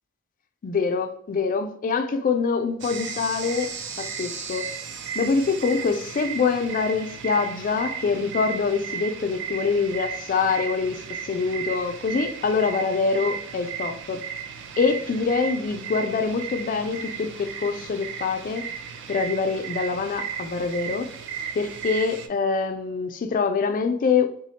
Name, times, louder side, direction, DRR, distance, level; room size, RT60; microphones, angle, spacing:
voice 1, 0.6-4.8 5.1-14.3 14.8-18.7 19.1-21.1 21.6-24.3, left 5 dB, 40° left, 0.3 m, -25 dB
sound 1, 2.8-22.3, right 7 dB, 60° right, 0.4 m, -35 dB
3.4 x 2.1 x 3.9 m
head